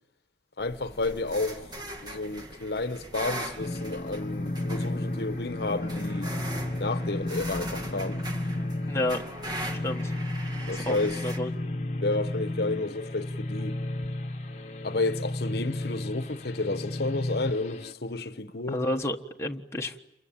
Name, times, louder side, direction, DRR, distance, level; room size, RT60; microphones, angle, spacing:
voice 1, 0.6-1.7 2.0-6.3 6.8-8.3 10.7-11.2 12.0-13.8 14.8-18.8, left 2 dB, 65° left, 1.0 m, -31 dB
sound 1, 0.6-11.4, right 1 dB, 25° right, 2.2 m, -40 dB
sound 2, 3.6-17.9, left 1 dB, 40° left, 1.3 m, -33 dB
voice 2, 8.9-9.2 9.8-10.1 10.7-11.0 11.2-11.5 18.7-20.0, left 1 dB, 15° left, 1.4 m, -30 dB
29.0 x 23.5 x 8.7 m
head